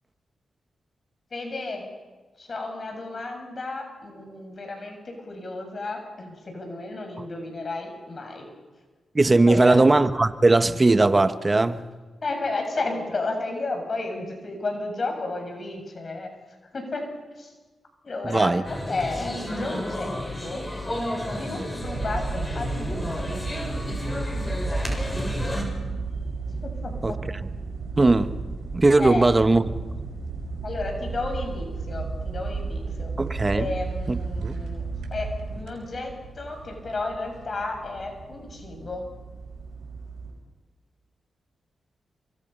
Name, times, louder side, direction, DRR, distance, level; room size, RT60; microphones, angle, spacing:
voice 1, 1.3-1.9 2.4-8.5 9.3-9.9 12.2-16.3 16.7-17.1 17.4-17.5 18.0-20.1 20.4-20.7 21.4-23.3 26.8-27.2 29.0-29.3 30.6-33.1 33.5-39.1, left 3 dB, 50° left, 6.9 m, -32 dB
voice 2, 9.1-11.8 18.2-18.6 27.0-27.1 28.0-28.3 28.7-29.6 33.2-33.7 34.1-34.5, right 2 dB, 30° right, 1.5 m, -19 dB
sound 1, 18.6-25.6, equal, 25° left, 7.2 m, -31 dB
sound 2, 21.8-40.3, right 4 dB, 90° right, 5.6 m, -34 dB
28.5 x 24.5 x 5.7 m
supercardioid pair, 45°, 0 cm